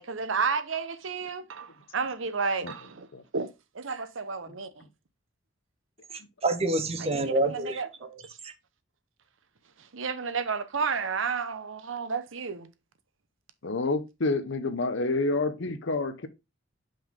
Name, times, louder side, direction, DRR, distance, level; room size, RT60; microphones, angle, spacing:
voice 1, 0.0-3.1 3.3-3.5 3.7-4.7 7.0-7.9 9.9-12.7, right 5 dB, 70° right, 0.8 m, -31 dB
voice 2, 6.1-8.2 8.4-8.5, right 2 dB, 30° right, 0.8 m, -28 dB
voice 3, 13.6-16.3, left 3 dB, 65° left, 0.8 m, -28 dB
5.7 x 5.4 x 3.6 m
head